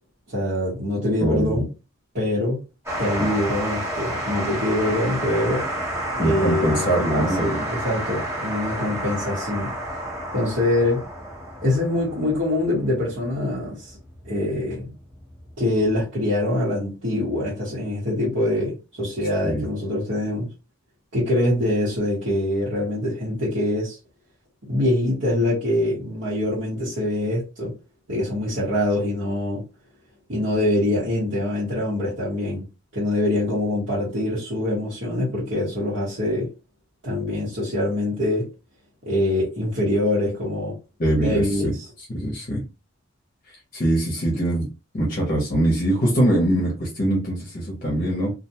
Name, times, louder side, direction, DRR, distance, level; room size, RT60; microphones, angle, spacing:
voice 1, 0.3-1.6 2.1-2.6 3.0-5.6 6.1-9.7 10.3-11.0 11.6-14.0 14.2-14.9 15.6-20.5 21.1-24.0 24.7-27.7 28.1-29.6 30.3-32.6 32.9-36.5 37.0-38.5 39.0-40.7 41.2-41.9, left 1 dB, 55° right, 1.1 m, -24 dB
voice 2, 1.2-1.6 6.2-7.6 19.4-19.6 41.0-41.7 42.1-42.6 43.7-44.7 44.9-48.3, right 1 dB, 40° left, 0.7 m, -22 dB
sound 1, 2.9-15.8, right 1 dB, 10° right, 0.8 m, -30 dB
2.4 x 2.2 x 2.8 m
head